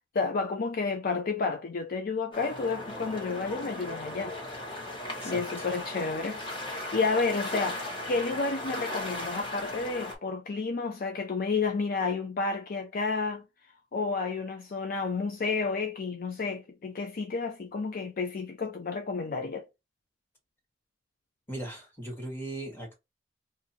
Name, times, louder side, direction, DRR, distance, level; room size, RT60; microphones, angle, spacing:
voice 1, 0.1-4.3 5.2-6.4 6.7-7.8 8.1-13.4 13.9-19.7, left 4 dB, 50° left, 0.5 m, -31 dB
sound 1, 2.3-10.2, left 1 dB, 25° left, 1.2 m, -37 dB
voice 2, 5.2-5.7 21.5-22.9, right 1 dB, 10° left, 1.4 m, -38 dB
2.7 x 2.5 x 4.0 m
head